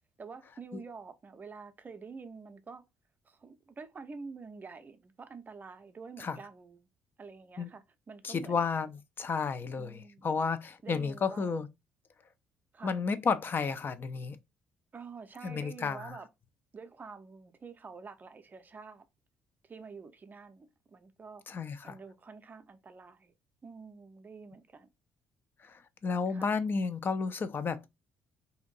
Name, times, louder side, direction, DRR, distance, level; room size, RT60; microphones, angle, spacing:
voice 1, 0.2-2.8 3.2-6.9 7.2-8.6 9.8-10.3 10.8-11.6 12.7-13.0 14.9-16.3 16.7-19.0 19.6-21.4 21.8-23.3 23.6-24.9 26.3-26.5, right 4 dB, 30° right, 0.5 m, -48 dB
voice 2, 8.2-11.7 12.8-14.4 15.4-16.1 21.5-22.0 25.6-27.9, left 5 dB, 35° left, 0.4 m, -32 dB
2.8 x 2.5 x 3.9 m
figure-of-eight pair, 45°, 6 cm